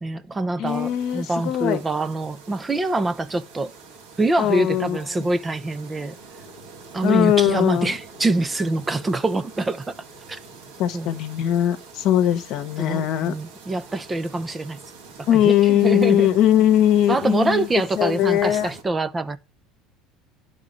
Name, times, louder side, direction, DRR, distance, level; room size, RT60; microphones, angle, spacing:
voice 1, 0.0-3.7 4.2-6.2 6.9-9.9 10.3-10.4 10.9-11.1 12.8-14.8 15.3-16.3 17.1-19.4, right 2 dB, 15° right, 0.5 m, -25 dB
voice 2, 0.6-1.8 4.4-5.3 7.0-7.9 10.8-13.3 15.3-17.7 17.9-18.7, left 11 dB, 60° left, 0.9 m, -20 dB
sound 1, 0.6-18.8, right 4 dB, 80° right, 2.1 m, -44 dB
10.5 x 3.7 x 5.2 m
supercardioid pair, 115°, 0 cm